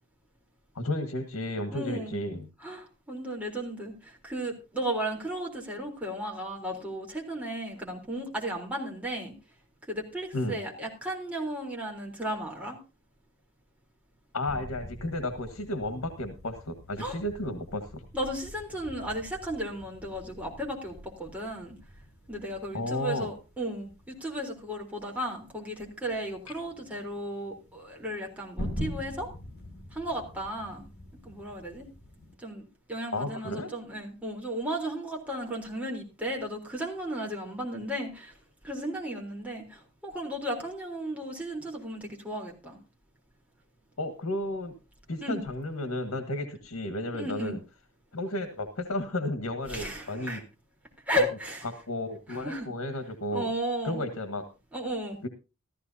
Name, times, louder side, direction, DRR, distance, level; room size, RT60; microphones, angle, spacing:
voice 1, 0.7-2.5 10.3-10.6 14.3-18.0 22.7-23.3 33.1-33.7 44.0-44.7 45.1-47.6 48.1-50.4 51.1-51.2 51.6-53.5 53.8-54.4 55.2-55.3, left 1 dB, 85° left, 8 dB, 1.6 m, -33 dB
voice 2, 1.7-2.2 2.6-9.3 9.9-12.8 17.0-17.2 18.1-21.8 22.3-29.3 29.9-30.8 31.2-31.9 32.4-38.3 38.6-42.8 45.2-45.4 47.1-47.5 49.7-50.4 51.1-51.6 52.4-52.7 53.3-54.0 54.7-55.2, right 1 dB, 5° right, -1 dB, 3.7 m, -34 dB
sound 1, 14.5-32.3, equal, 55° left, 7.6 m, -44 dB
15.0 x 14.0 x 2.8 m, 0.30 s
head